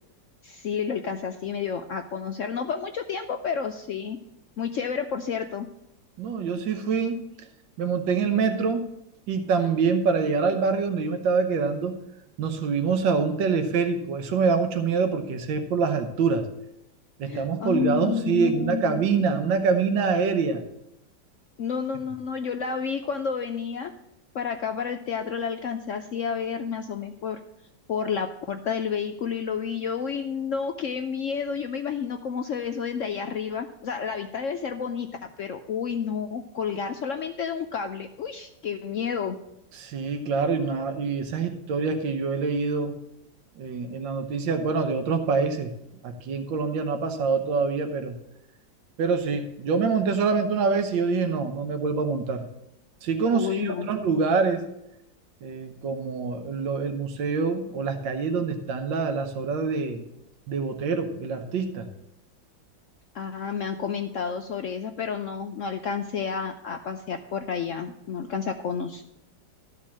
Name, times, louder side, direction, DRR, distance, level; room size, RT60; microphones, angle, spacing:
voice 1, 0.4-4.2 4.6-5.7 17.2-19.1 21.6-23.9 24.3-27.4 27.9-35.1 35.4-39.4 53.3-53.9 63.1-69.0, left 6 dB, 75° left, 6 dB, 0.7 m, -30 dB
voice 2, 6.2-7.2 7.8-8.9 9.3-12.0 12.4-16.4 17.2-20.6 39.7-42.9 43.6-45.7 46.0-48.2 49.0-52.4 53.0-54.6 55.4-60.0 60.5-61.9, right 5 dB, 80° right, 6 dB, 1.7 m, -25 dB
13.0 x 4.5 x 7.4 m, 0.84 s
omnidirectional pair, 2.0 m